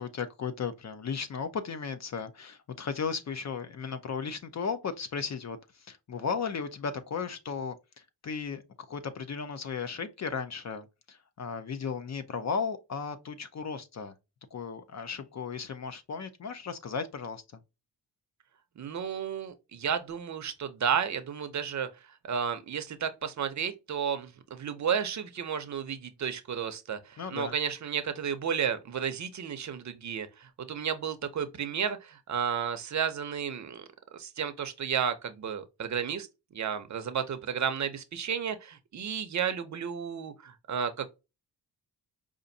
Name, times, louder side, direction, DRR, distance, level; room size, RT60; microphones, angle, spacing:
voice 1, 0.0-8.6 8.9-14.1 14.5-17.6 27.2-27.5, left 5 dB, 45° left, 0.5 m, -35 dB
voice 2, 18.8-21.9 22.2-33.8 34.1-36.3 36.5-41.1, right 7 dB, 45° right, 0.6 m, -32 dB
5.0 x 2.5 x 2.6 m
wide cardioid pair, 175°, 40 cm